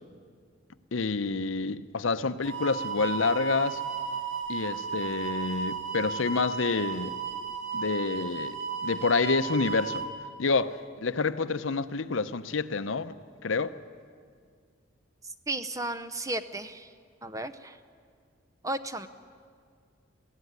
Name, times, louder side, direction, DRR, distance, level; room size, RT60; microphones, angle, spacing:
voice 1, 0.9-3.8 4.5-7.1 7.7-8.6 8.8-10.0 10.4-13.1 13.4-13.8, left 4 dB, 75° left, 0.7 m, -28 dB
sound 1, 2.4-10.1, right 6 dB, 75° right, 3.2 m, -34 dB
voice 2, 15.2-16.9 17.2-17.8 18.6-19.1, right 2 dB, 15° right, 0.6 m, -34 dB
22.5 x 16.0 x 9.5 m
head